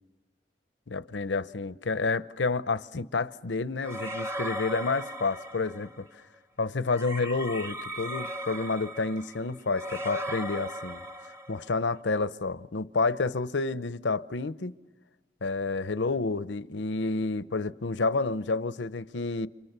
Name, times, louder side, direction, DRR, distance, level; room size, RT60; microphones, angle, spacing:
voice 1, 0.9-6.0 6.6-11.0 11.5-14.7 15.4-19.5, left 3 dB, 85° left, 0.8 m, -29 dB
sound 1, 3.8-6.0 6.9-11.8, right 1 dB, 15° right, 1.2 m, -37 dB
30.0 x 27.0 x 6.8 m
head